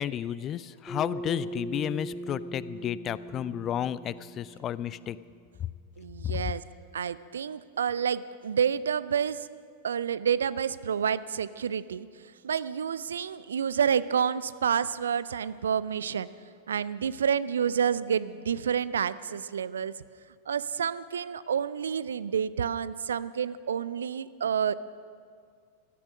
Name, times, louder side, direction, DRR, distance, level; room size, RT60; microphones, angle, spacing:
voice 1, 0.0-5.2 6.2-6.4, left 10 dB, 30° left, 17 dB, 0.4 m, -32 dB
Bass guitar, 0.9-5.3, right 1 dB, 5° left, 3.3 m, -40 dB
voice 2, 6.0-6.6 6.9-9.5 9.8-12.1 12.4-16.3 16.7-20.0 20.5-24.7, right 7 dB, 65° right, 17 dB, 0.4 m, -29 dB
16.0 x 13.0 x 6.2 m, 2.2 s
figure-of-eight pair, 90°, 0 cm